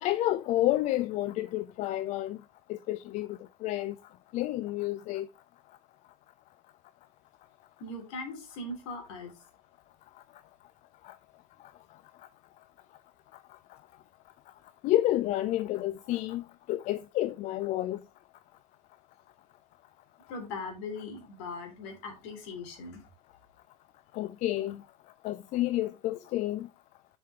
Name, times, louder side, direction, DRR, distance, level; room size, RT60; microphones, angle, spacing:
voice 1, 0.0-2.4 2.7-3.9 4.3-5.3 11.0-11.1 14.8-18.0 24.1-24.8 25.2-26.7, left 15 dB, 40° left, 0.5 m, -30 dB
voice 2, 7.8-9.3 20.3-23.0, left 3 dB, 55° left, 3.2 m, -40 dB
7.5 x 5.5 x 4.3 m
figure-of-eight pair, 75°, 18 cm